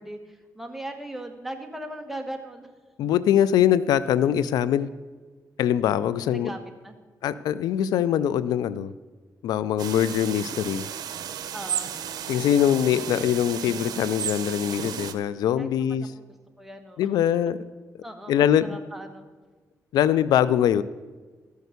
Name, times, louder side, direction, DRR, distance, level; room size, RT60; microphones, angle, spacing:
voice 1, 0.0-2.7 6.3-6.9 11.5-11.9 15.6-17.1 18.0-19.3, right 1 dB, 5° right, 5 dB, 1.6 m, -39 dB
voice 2, 3.0-4.9 5.6-6.5 7.2-8.9 9.4-10.9 12.3-16.0 17.0-17.6 18.3-18.7 19.9-20.8, left 10 dB, 90° left, 17 dB, 0.4 m, -22 dB
sound 1, 9.8-15.1, right 9 dB, 80° right, 0.7 m, -33 dB
13.5 x 6.4 x 6.7 m, 1.3 s
cardioid pair, 85°, 7 cm